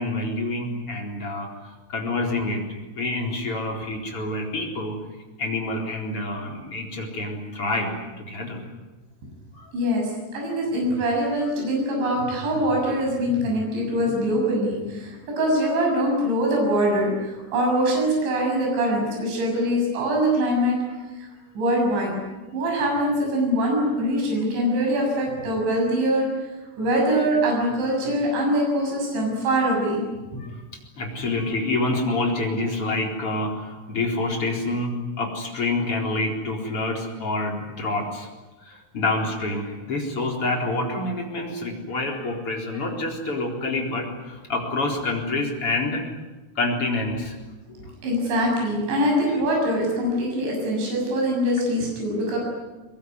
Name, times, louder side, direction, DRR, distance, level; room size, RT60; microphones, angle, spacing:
voice 1, 0.0-2.6 3.0-5.0 5.4-8.6 9.5-9.7 22.5-22.6 24.6-24.7 30.4-30.6 31.0-38.3 38.6-46.0 46.5-47.4, left 2 dB, 30° left, 1 dB, 4.6 m, -27 dB
voice 2, 9.7-20.8 21.6-22.1 22.5-26.3 26.8-30.0 30.3-30.4 47.7-47.8 48.0-52.4, equal, 65° right, -1 dB, 9.2 m, -23 dB
23.0 x 22.5 x 9.7 m, 1.1 s
omnidirectional pair, 5.6 m